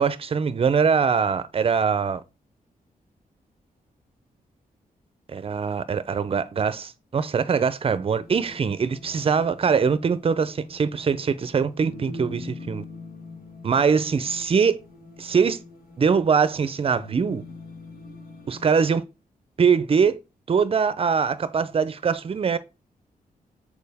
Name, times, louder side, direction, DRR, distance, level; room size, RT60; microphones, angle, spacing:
voice 1, 0.0-2.2 5.3-12.8 13.6-14.8 15.2-15.6 16.0-17.4 18.5-19.0 19.6-20.2 20.5-22.6, right 6 dB, 40° right, 0.6 m, -22 dB
sound 1, 8.2-18.7, left 3 dB, 80° left, 1.7 m, -43 dB
6.7 x 4.5 x 3.5 m
cardioid pair, 100°, 15 cm